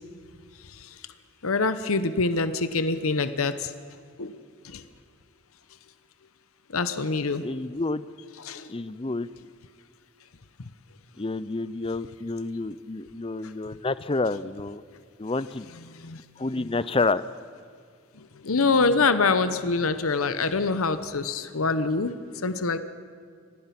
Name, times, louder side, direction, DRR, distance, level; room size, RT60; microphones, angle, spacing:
voice 1, 0.6-1.0 1.4-3.7 4.2-4.4 4.6-4.8 6.7-7.5 8.4-8.7 13.4-13.5 15.7-16.8 18.1-22.2 22.4-22.8, left 4 dB, 75° left, 11 dB, 0.9 m, -26 dB
voice 2, 7.4-8.0 8.7-9.3 11.2-14.8 15.2-15.7 16.4-17.2, left 3 dB, 25° left, 16 dB, 0.5 m, -29 dB
25.5 x 18.5 x 6.0 m, 2.2 s
head